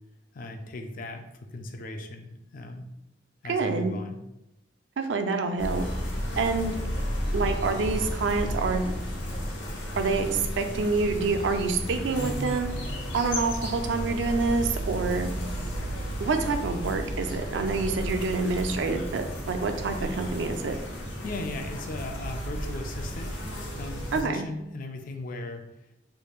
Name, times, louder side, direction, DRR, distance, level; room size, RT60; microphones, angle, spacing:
voice 1, 0.3-2.9 3.4-4.2 21.2-23.3 23.7-25.7, left 2 dB, 50° left, 5 dB, 0.4 m, -37 dB
voice 2, 3.5-4.0 5.0-5.8 6.4-6.8 7.3-8.9 10.0-12.7 13.1-15.3 16.2-20.8 24.1-24.5, right 4 dB, 75° right, 6 dB, 0.4 m, -27 dB
sound 1, 5.6-24.2, equal, 85° left, 0.8 m, -33 dB
3.4 x 3.1 x 2.3 m, 0.88 s
head